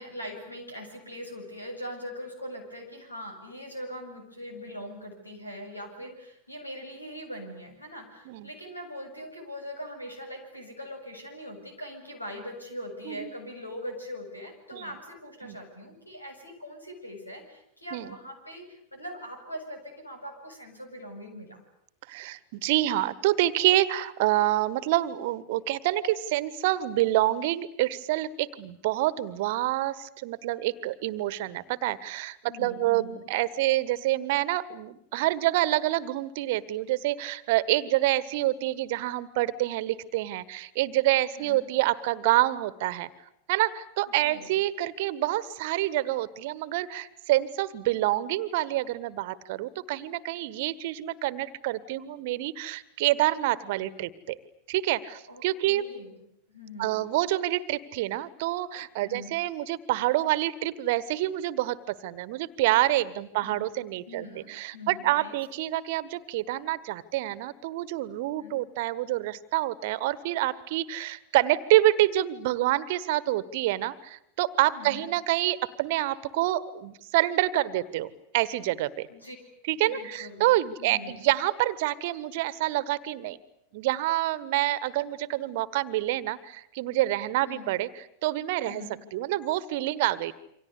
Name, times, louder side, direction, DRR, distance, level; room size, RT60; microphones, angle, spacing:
voice 1, 0.0-21.6 32.5-33.3 41.4-41.7 44.2-44.5 55.3-56.2 56.5-57.0 59.0-59.3 63.4-63.7 64.1-65.3 68.4-68.6 74.7-75.1 79.1-79.4 79.9-80.5 80.8-81.3 87.4-87.7 88.6-88.9, equal, 85° left, 5 dB, 7.5 m, -41 dB
voice 2, 22.1-43.1 43.5-54.3 54.7-55.9 56.8-79.1 79.7-83.4 83.7-87.9 88.2-88.8 89.1-90.3, right 15 dB, 50° right, 18 dB, 1.4 m, -27 dB
28.5 x 25.0 x 8.4 m, 0.77 s
figure-of-eight pair, 90°, 0 cm